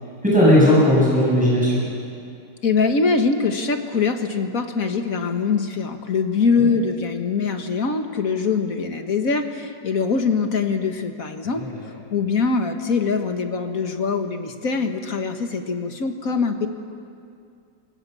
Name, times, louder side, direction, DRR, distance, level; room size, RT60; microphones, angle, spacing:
voice 1, 0.2-1.8 6.6-6.7 11.5-11.9, equal, 5° right, -6 dB, 8.0 m, -17 dB
voice 2, 2.6-11.6 12.1-16.7, left 4 dB, 55° left, 6 dB, 1.9 m, -23 dB
28.5 x 24.5 x 7.0 m, 2.4 s
omnidirectional pair, 1.9 m